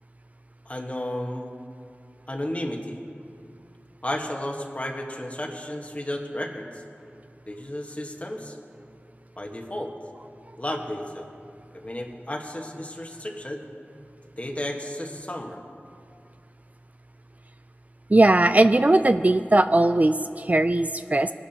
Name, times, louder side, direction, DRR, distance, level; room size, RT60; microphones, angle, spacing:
voice 1, 0.6-1.5 2.3-3.0 4.0-6.8 7.5-8.6 9.4-9.9 10.6-11.2 11.7-13.6 14.4-15.6, left 1 dB, 35° left, 1 dB, 1.4 m, -33 dB
voice 2, 18.1-21.3, right 2 dB, 40° right, 10 dB, 0.3 m, -19 dB
20.0 x 12.0 x 2.9 m, 2.5 s
wide cardioid pair, 45°, 4 cm